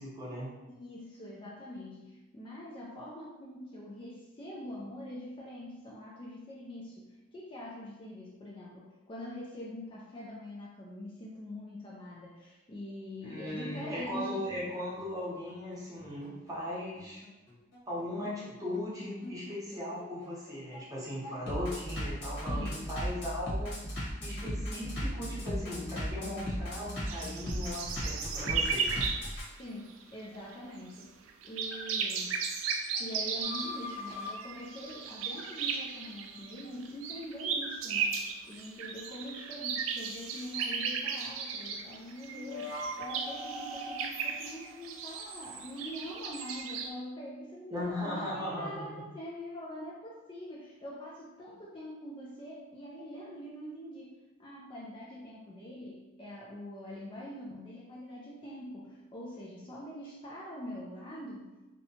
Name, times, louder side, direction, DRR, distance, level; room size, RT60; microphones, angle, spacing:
voice 1, 0.0-0.5 13.2-17.2 17.9-23.7 24.2-29.1 47.7-49.1, left 1 dB, 20° right, -7 dB, 0.7 m, -38 dB
voice 2, 0.7-14.5 22.5-23.1 29.6-32.4 33.0-61.6, left 1 dB, 25° left, -4 dB, 0.3 m, -44 dB
Bass drum, 13.5-29.5, equal, 60° left, 1.0 m, -37 dB
sound 1, 27.1-30.0 30.3-30.5 30.9-31.0 31.3-46.9, right 5 dB, 80° right, 0.3 m, -36 dB
sound 2, 33.4-35.8 42.3-45.6, left 1 dB, 85° left, 0.9 m, -42 dB
2.7 x 2.2 x 2.7 m, 1.1 s
head